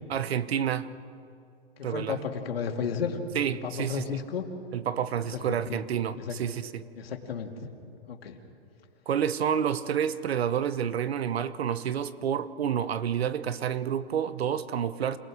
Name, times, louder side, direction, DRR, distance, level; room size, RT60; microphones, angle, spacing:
voice 1, 0.1-0.9 1.8-2.2 3.3-4.0 4.7-6.8 9.1-15.2, right 8 dB, 70° right, 14 dB, 1.1 m, -29 dB
voice 2, 1.9-3.2 3.6-4.5 5.3-5.8 6.2-6.3 7.0-7.5 8.1-8.4, left 7 dB, 65° left, 3 dB, 2.6 m, -33 dB
27.5 x 18.0 x 6.3 m, 2.5 s
hypercardioid pair, 175°, 32 cm